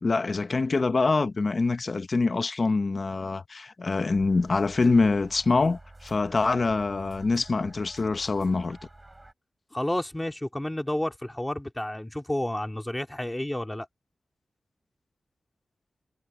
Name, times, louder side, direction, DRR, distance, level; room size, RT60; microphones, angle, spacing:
voice 1, 0.0-8.8, left 3 dB, 40° left, 0.8 m, -25 dB
sound 1, 4.1-9.3, right 2 dB, 20° right, 4.4 m, -49 dB
voice 2, 9.7-13.9, left 1 dB, 10° left, 2.5 m, -30 dB
wide cardioid pair, 135°, 0 cm